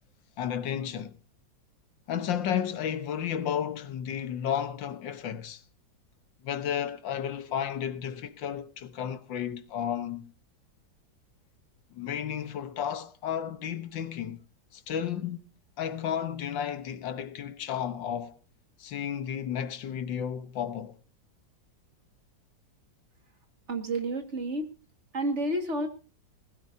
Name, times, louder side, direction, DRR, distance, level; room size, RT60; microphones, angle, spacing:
voice 1, 0.4-1.2 2.1-5.6 6.4-10.3 11.9-14.4 14.7-15.4 15.8-18.4 18.8-21.0, left 9 dB, 90° left, 1.8 m, -32 dB
voice 2, 23.7-24.7 25.1-25.9, right 1 dB, 40° right, 2.1 m, -30 dB
19.5 x 16.5 x 2.7 m
omnidirectional pair, 2.0 m